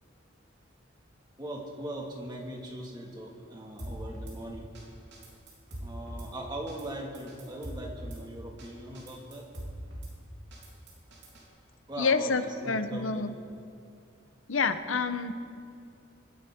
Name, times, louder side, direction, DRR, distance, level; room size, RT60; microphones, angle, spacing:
voice 1, 1.4-4.7 5.8-9.4 11.9-13.2, right 1 dB, 20° right, -1 dB, 1.9 m, -40 dB
Drum kit / Snare drum, 3.8-4.4 4.7-4.8 5.1-6.3 6.7-6.9 7.1-8.2 8.6-8.7 8.9-10.1 10.5-11.4, right 1 dB, 60° right, 3.4 m, -42 dB
voice 2, 12.0-13.3 14.5-15.3, left 4 dB, 85° left, 10 dB, 0.8 m, -28 dB
25.5 x 10.5 x 3.7 m, 2.5 s
head